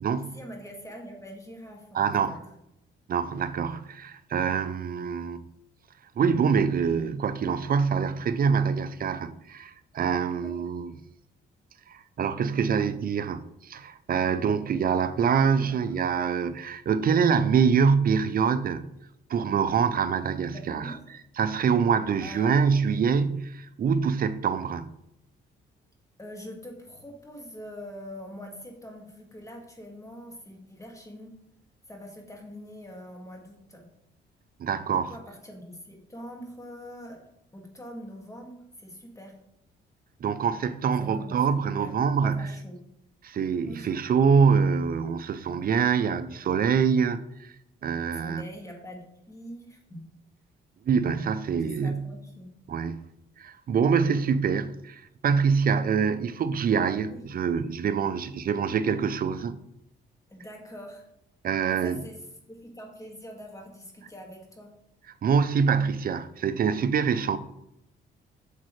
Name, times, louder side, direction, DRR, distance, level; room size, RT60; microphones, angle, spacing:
voice 1, 0.2-2.4 10.4-10.6 15.6-15.8 20.5-21.0 22.2-22.5 26.2-31.3 31.9-33.9 34.9-37.2 37.5-39.3 41.0-41.4 41.8-41.9 42.2-42.8 43.6-43.9 48.2-50.0 51.7-52.5 57.1-57.3 60.3-61.1 61.7-62.2 62.5-64.7, equal, 15° left, 2.0 m, -43 dB
voice 2, 1.9-2.3 3.1-5.4 6.2-10.9 11.9-18.9 19.3-20.9 21.4-24.9 34.6-35.1 40.2-42.4 43.2-47.5 47.8-48.4 50.9-52.0 52.7-53.0 53.4-59.6 61.4-62.0 65.2-67.4, right 6 dB, 50° right, 0.5 m, -25 dB
8.1 x 7.3 x 3.2 m
cardioid pair, 90°, 20 cm